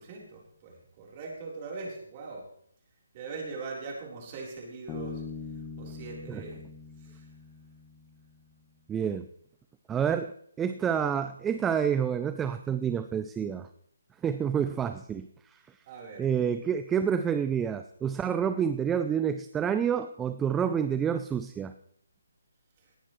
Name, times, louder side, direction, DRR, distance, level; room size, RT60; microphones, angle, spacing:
voice 1, 0.0-2.4 3.1-5.2 5.8-6.6 7.1-7.2 15.9-16.2, right 4 dB, 30° right, -2 dB, 4.0 m, -41 dB
Bass guitar, 4.9-8.4, left 4 dB, 15° left, 1.3 m, -42 dB
voice 2, 8.9-9.3 9.9-10.3 10.6-13.7 14.2-15.8 16.2-21.7, right 8 dB, 10° right, 10 dB, 0.4 m, -28 dB
18.5 x 10.5 x 3.2 m, 0.65 s
hypercardioid pair, 160°, 0 cm